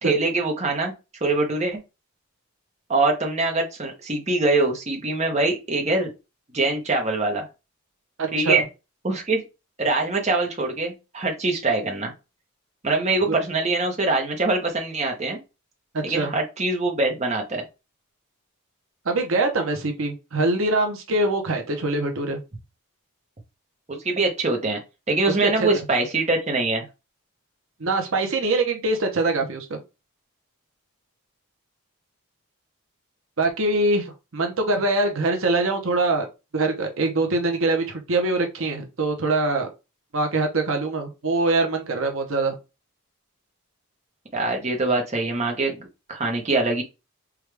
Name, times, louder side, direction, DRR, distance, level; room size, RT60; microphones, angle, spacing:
voice 1, 0.0-0.9 1.2-1.8 2.9-6.1 6.5-7.5 8.3-8.7 9.0-9.4 9.8-12.1 12.8-15.4 16.0-17.6 23.9-24.8 25.1-26.9 44.3-46.8, right 2 dB, 30° right, 2 dB, 0.8 m, -23 dB
voice 2, 8.2-8.6 13.3-13.4 16.1-16.3 19.0-22.4 25.2-25.7 27.8-29.8 33.4-34.1 34.3-36.3 36.5-39.7 40.1-42.5, right 2 dB, 65° right, 4 dB, 0.8 m, -23 dB
4.8 x 2.3 x 3.3 m, 0.27 s
head